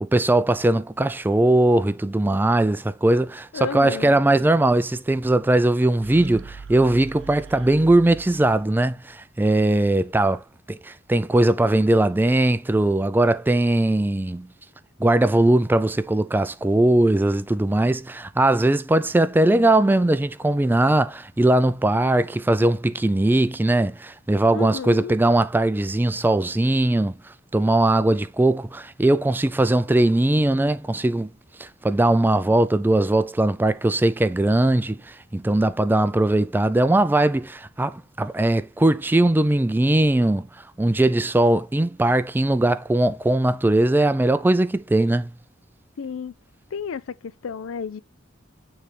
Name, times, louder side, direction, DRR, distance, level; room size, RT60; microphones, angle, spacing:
voice 1, 0.0-10.4 10.7-14.5 15.0-27.2 27.5-31.3 31.6-40.5 40.8-45.3, right 1 dB, 10° right, 0.3 m, -20 dB
voice 2, 3.5-4.2 24.5-25.2 46.0-46.3 46.7-48.0, left 6 dB, 85° left, 0.4 m, -32 dB
sound 1, 6.0-8.8, right 5 dB, 70° right, 0.6 m, -41 dB
9.1 x 3.3 x 3.3 m
head